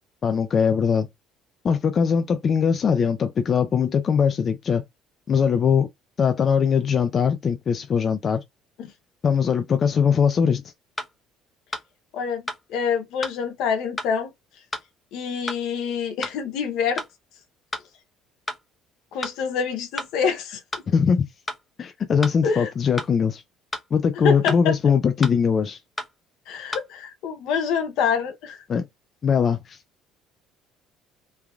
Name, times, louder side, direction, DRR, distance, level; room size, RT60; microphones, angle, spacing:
voice 1, 0.2-1.1 1.6-4.8 5.3-5.9 6.2-8.4 9.2-10.6 20.9-21.2 21.8-23.4 23.9-25.8 28.7-28.9 29.2-29.8, left 6 dB, 45° left, 0.4 m, -21 dB
sound 1, 10.3-10.4 11.0-11.1 11.7-11.9 12.5-12.6 13.2-13.4 14.0-14.1 14.7-14.9 15.5-15.6 16.2-16.4 17.0-17.1 17.7-17.9 18.5-18.6 19.2-19.4 20.0-20.1 20.7-20.9 21.5-21.6 22.2-22.4 23.0-23.1 23.7-23.9 24.5-24.6 25.2-25.4 26.0-26.1 26.7-26.9, left 1 dB, 15° left, 0.7 m, -31 dB
voice 2, 12.7-14.3 15.1-17.0 19.1-20.6 22.4-22.7 24.2-24.7 26.5-28.6, left 6 dB, 70° left, 0.7 m, -26 dB
3.3 x 2.2 x 2.3 m
supercardioid pair, 75°, 0 cm